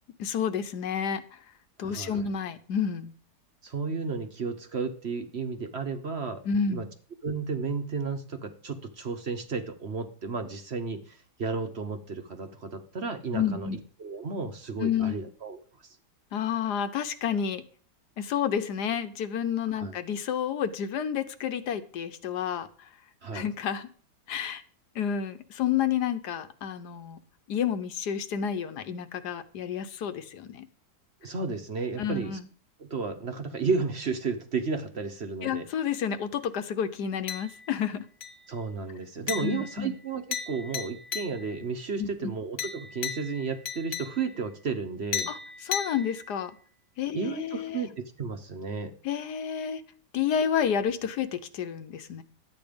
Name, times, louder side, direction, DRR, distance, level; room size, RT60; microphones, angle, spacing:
voice 1, 0.2-1.4 1.8-3.1 6.4-6.9 13.3-13.8 14.8-15.2 16.3-17.6 18.2-22.9 23.3-23.9 24.3-24.6 24.9-27.2 27.5-30.6 32.0-32.5 35.4-38.0 39.4-40.0 42.0-42.3 45.3-45.4 45.6-46.5 47.0-47.8 49.0-49.8 50.1-52.2, left 8 dB, 80° left, 10 dB, 1.5 m, -30 dB
voice 2, 1.8-2.2 3.6-6.4 6.7-6.9 7.2-13.7 14.0-15.6 19.8-19.9 23.2-23.5 31.2-32.4 32.8-35.7 38.5-45.3 47.1-48.9, right 4 dB, 45° right, 7 dB, 1.2 m, -33 dB
sound 1, 37.3-37.8 38.2-38.6 39.3-41.7 42.6-44.5 45.1-46.6, left 7 dB, 50° left, 1.3 m, -36 dB
12.0 x 8.7 x 5.2 m, 0.44 s
omnidirectional pair, 1.8 m